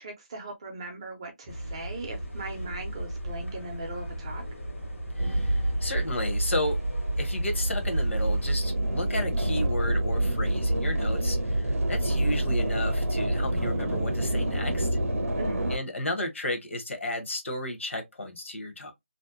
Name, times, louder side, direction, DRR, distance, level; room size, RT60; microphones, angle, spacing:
voice 1, 0.0-4.4 15.3-15.7, right 2 dB, 25° right, 0.5 m, -39 dB
sound 1, 1.5-8.5, equal, 85° left, 1.2 m, -37 dB
sound 2, 4.3-15.8, left 3 dB, 30° left, 0.5 m, -51 dB
voice 2, 5.2-6.8 7.2-14.9 15.7-18.9, left 1 dB, 65° left, 0.9 m, -33 dB
sound 3, 5.2-15.8, right 1 dB, 85° right, 0.6 m, -27 dB
2.6 x 2.0 x 2.3 m
figure-of-eight pair, 165°, 7 cm